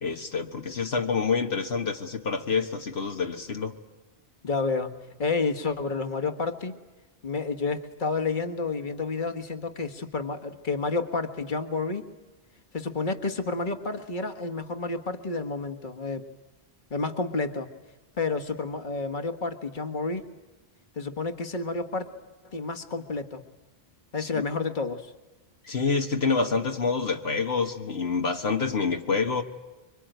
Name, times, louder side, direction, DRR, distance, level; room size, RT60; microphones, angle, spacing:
voice 1, 0.0-3.7 24.2-24.4 25.6-29.4, left 4 dB, 70° left, 4 dB, 1.7 m, -27 dB
voice 2, 4.4-4.9 5.2-6.8 7.2-12.1 12.7-16.2 16.9-17.7 18.2-20.2 21.0-22.1 22.4-23.4 24.1-25.1, left 3 dB, 50° left, 7 dB, 1.8 m, -30 dB
26.5 x 24.0 x 9.2 m, 1.1 s
omnidirectional pair, 1.1 m